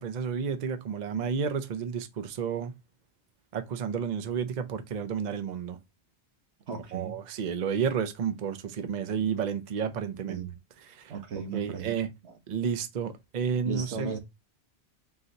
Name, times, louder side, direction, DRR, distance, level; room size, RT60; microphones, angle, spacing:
voice 1, 0.0-2.7 3.5-5.8 6.9-10.4 10.8-12.1 12.5-14.1, right 7 dB, 50° right, 0.6 m, -31 dB
voice 2, 6.7-7.2 10.3-10.5 11.1-12.3 13.7-14.2, right 7 dB, 80° right, 1.2 m, -36 dB
4.0 x 2.9 x 3.7 m
omnidirectional pair, 1.1 m